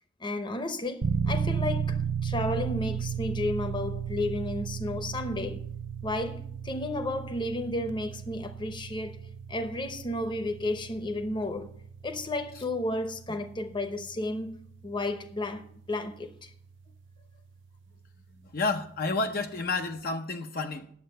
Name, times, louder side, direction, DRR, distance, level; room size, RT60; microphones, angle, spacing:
voice 1, 0.2-5.6 6.0-9.2 9.5-11.7 12.0-16.5, left 1 dB, 25° left, 0.9 m, -32 dB
sound 1, 1.0-17.8, right 7 dB, 80° right, 0.5 m, -35 dB
voice 2, 18.5-20.9, left 3 dB, 55° left, 0.7 m, -30 dB
9.6 x 7.7 x 6.6 m
head